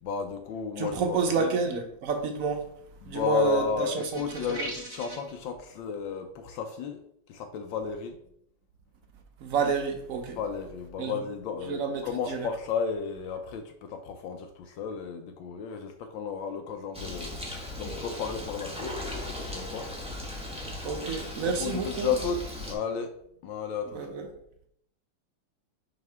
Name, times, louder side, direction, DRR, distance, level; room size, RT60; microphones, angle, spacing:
voice 1, 0.0-1.5 3.0-7.0 7.3-8.2 10.3-17.4 17.8-19.0 19.4-19.9 21.4-23.1 23.4-24.0, left 6 dB, 70° left, 1.3 m, -33 dB
voice 2, 0.8-2.7 3.1-3.9 9.4-10.4 11.0-11.1 11.7-12.4 20.8-22.1 23.9-24.3, right 5 dB, 75° right, 0.7 m, -29 dB
sound 1, 4.0-5.3, right 1 dB, 35° right, 1.7 m, -39 dB
Bird, 16.9-22.7, left 1 dB, 5° right, 0.7 m, -37 dB
5.7 x 5.2 x 3.4 m
omnidirectional pair, 2.3 m